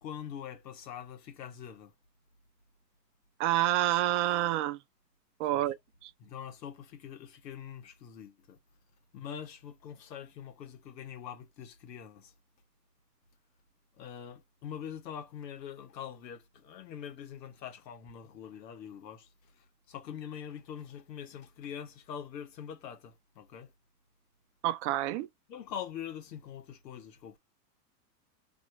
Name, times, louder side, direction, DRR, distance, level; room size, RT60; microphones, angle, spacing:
voice 1, 0.0-1.9 5.5-5.6 6.2-8.6 9.1-12.3 14.0-19.3 19.6-23.7 25.5-27.4, left 8 dB, 90° left, 1.4 m, -44 dB
voice 2, 3.4-4.8 5.4-5.8 6.0-6.1 24.6-25.3, right 14 dB, 50° right, 0.6 m, -28 dB
3.0 x 3.0 x 2.6 m
supercardioid pair, 135°, 49 cm